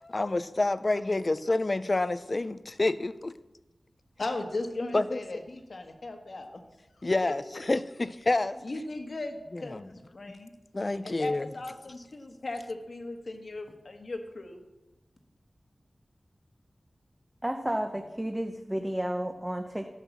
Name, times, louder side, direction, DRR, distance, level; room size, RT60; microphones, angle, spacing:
voice 1, 0.0-3.3 4.9-5.2 7.0-8.6 9.5-9.9 10.7-11.5, left 2 dB, 45° left, 0.5 m, -28 dB
voice 2, 4.2-6.5 7.2-7.3 8.6-10.5 11.0-14.6, left 2 dB, 70° left, 1.4 m, -37 dB
voice 3, 17.4-19.9, right 1 dB, 15° right, 0.8 m, -32 dB
12.0 x 5.8 x 7.2 m
wide cardioid pair, 65°, 0 cm